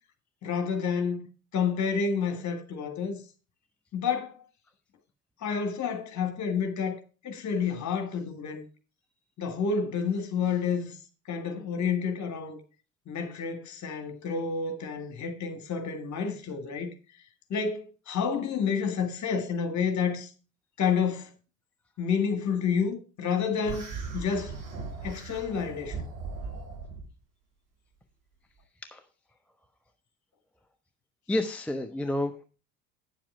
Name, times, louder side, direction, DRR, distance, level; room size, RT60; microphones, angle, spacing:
voice 1, 0.4-1.3 1.5-3.2 3.9-4.4 5.4-7.0 7.2-8.7 9.4-11.0 11.3-12.6 13.1-16.9 17.5-20.3 20.8-21.3 22.0-24.6 25.0-26.0, left 6 dB, 35° left, 1.9 m, -29 dB
sound 1, 23.6-27.1, right 4 dB, 65° right, 3.4 m, -38 dB
voice 2, 31.3-32.4, left 1 dB, 5° left, 0.6 m, -30 dB
9.0 x 7.4 x 4.9 m
figure-of-eight pair, 60°, 46 cm